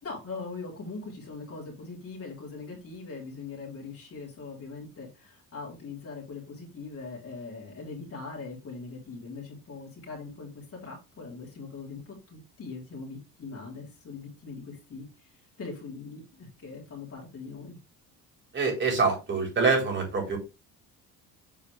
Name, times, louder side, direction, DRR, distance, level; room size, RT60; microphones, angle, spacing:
voice 1, 0.0-17.8, left 4 dB, 40° left, -3 dB, 3.5 m, -41 dB
voice 2, 18.5-20.4, right 4 dB, 30° right, 0 dB, 4.4 m, -25 dB
7.4 x 4.7 x 3.5 m, 0.26 s
cardioid pair, 110°, 35 cm